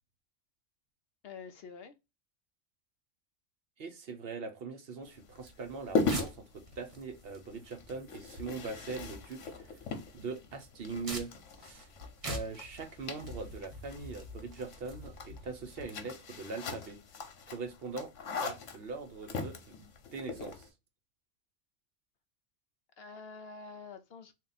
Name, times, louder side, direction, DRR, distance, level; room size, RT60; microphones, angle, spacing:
voice 1, 1.2-1.9 23.0-24.3, left 4 dB, 65° left, 0.7 m, -47 dB
voice 2, 3.8-9.8 10.1-11.3 11.6-11.9 12.3-17.0 17.5-18.1 18.4-20.7, right 4 dB, 60° right, 0.9 m, -41 dB
sound 1, 5.0-20.7, left 4 dB, 80° left, 1.1 m, -40 dB
sound 2, 5.4-15.8, equal, 30° right, 1.0 m, -46 dB
3.6 x 2.3 x 3.9 m
omnidirectional pair, 1.2 m